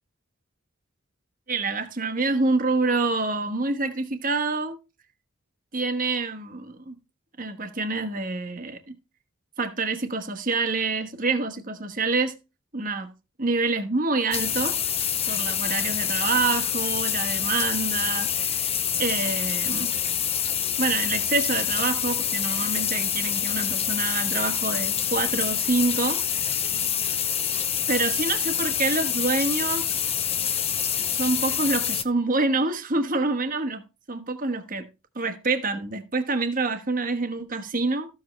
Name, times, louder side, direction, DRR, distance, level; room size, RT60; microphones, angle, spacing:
voice 1, 1.5-4.8 5.7-7.0 7.4-8.8 9.6-12.3 12.7-13.1 13.4-14.7 15.3-18.5 19.0-19.9 20.8-26.2 27.9-30.0 31.1-33.8 34.1-34.9 35.1-38.1, right 3 dB, 40° right, 1.3 m, -26 dB
sound 1, 14.3-32.0, left 9 dB, 30° left, 0.7 m, -26 dB
14.0 x 7.5 x 3.2 m
head